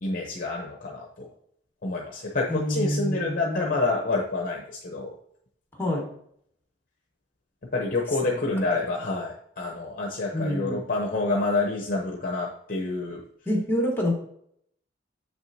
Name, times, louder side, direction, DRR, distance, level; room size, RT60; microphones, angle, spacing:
voice 1, 0.0-1.3 1.8-5.1 7.7-13.2, left 3 dB, 45° left, 0 dB, 0.8 m, -28 dB
voice 2, 2.5-3.8 5.7-6.1 8.2-8.4 10.3-10.8 13.4-14.1, left 1 dB, 10° left, 0 dB, 1.4 m, -27 dB
7.5 x 6.1 x 2.7 m, 0.69 s
head